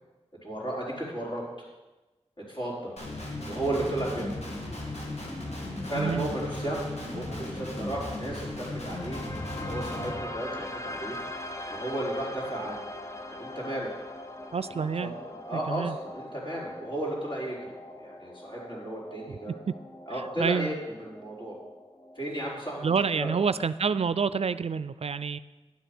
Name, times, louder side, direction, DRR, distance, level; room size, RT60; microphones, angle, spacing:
voice 1, 0.4-1.4 2.5-2.9 3.4-4.3 5.8-6.8 7.1-9.2 9.6-11.2 11.7-12.8 13.4-13.9 14.8-17.6 18.0-19.5 20.1-21.6 22.2-23.3, right 1 dB, 45° left, -4 dB, 4.2 m, -34 dB
Guitar, 3.0-10.1, left 1 dB, 70° left, 2.4 m, -36 dB
voice 2, 5.9-6.3 14.5-15.2 15.5-16.0 20.4-20.7 22.8-25.4, right 6 dB, 65° right, 15 dB, 0.4 m, -28 dB
sound 1, 8.2-24.2, left 1 dB, 25° left, 0.8 m, -42 dB
10.5 x 8.2 x 6.0 m, 1.1 s
wide cardioid pair, 60°, 11 cm